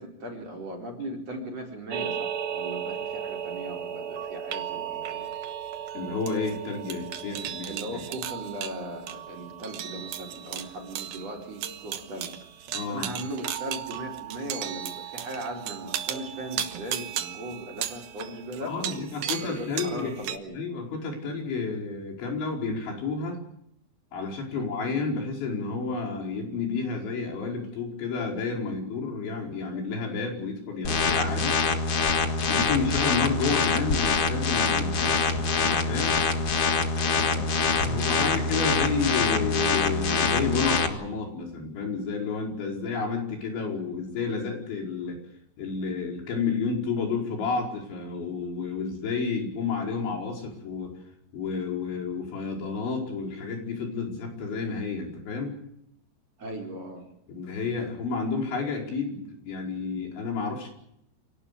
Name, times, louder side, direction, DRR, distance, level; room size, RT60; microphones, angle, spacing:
voice 1, 0.0-5.3 7.3-12.3 12.9-19.0 19.2-20.6 24.5-24.7 32.6-32.8 36.3-36.5 37.0-39.0 56.4-57.0, right 1 dB, 35° right, 0 dB, 5.0 m, -38 dB
sound 1, 1.9-20.4, right 10 dB, 65° right, 2.7 m, -35 dB
voice 2, 5.9-8.0 12.7-13.1 18.6-23.4 24.1-31.6 32.5-36.2 37.9-45.2 45.6-50.9 51.3-55.6 57.3-60.7, left 4 dB, 85° left, 0 dB, 7.3 m, -31 dB
sound 2, 30.8-40.9, left 4 dB, 50° left, 1.8 m, -25 dB
26.5 x 18.0 x 8.5 m, 0.75 s
omnidirectional pair, 5.2 m